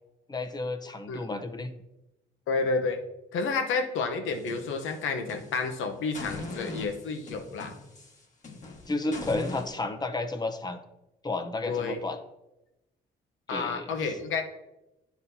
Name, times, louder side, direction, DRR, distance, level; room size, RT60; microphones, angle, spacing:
voice 1, 0.3-1.7 8.9-10.8 11.2-12.2 13.5-14.1, left 2 dB, 20° left, 7 dB, 0.7 m, -32 dB
voice 2, 2.5-3.0 3.3-7.7 11.7-12.0 13.5-14.4, left 4 dB, 80° left, 5 dB, 0.9 m, -30 dB
sound 1, 4.3-5.7 6.1-9.7, left 2 dB, 40° left, 1.4 m, -41 dB
10.5 x 4.1 x 2.7 m, 0.95 s
cardioid pair, 90°, 20 cm